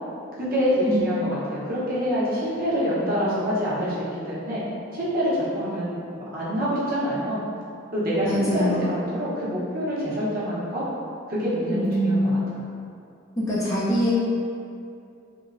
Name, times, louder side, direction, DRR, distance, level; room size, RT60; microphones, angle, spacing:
voice 1, 0.4-4.0 4.3-4.6 4.9-6.0 6.3-7.4 7.9-10.8 11.3-12.4, equal, 45° right, -9 dB, 0.7 m, -26 dB
voice 2, 8.2-8.9 11.7-12.3 13.4-14.1, equal, 15° left, -9 dB, 0.3 m, -24 dB
3.0 x 2.0 x 2.4 m, 2.5 s
head